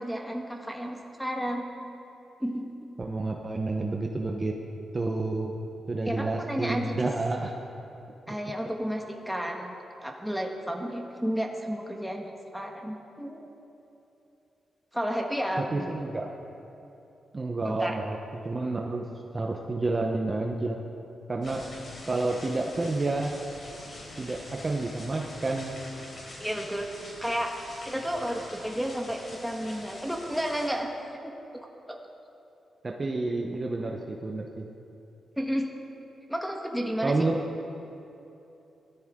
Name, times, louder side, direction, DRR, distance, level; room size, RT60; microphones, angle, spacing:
voice 1, 0.0-1.7 2.4-2.7 6.1-7.0 8.3-13.5 14.9-16.0 17.6-18.0 26.4-26.9 27.2-30.9 31.5-32.0 35.4-35.7 36.3-37.3, equal, ahead, 1 dB, 1.4 m, -32 dB
voice 2, 3.0-4.5 4.9-5.5 5.9-7.5 15.6-16.3 17.3-18.2 18.4-20.8 21.3-21.6 22.1-23.4 24.2-25.8 32.8-34.7 37.0-37.4, right 2 dB, 30° right, 1 dB, 0.9 m, -29 dB
sound 1, 21.4-30.7, left 1 dB, 50° left, 3.7 m, -45 dB
17.5 x 12.5 x 3.7 m, 2.9 s
cardioid pair, 95°, 0 cm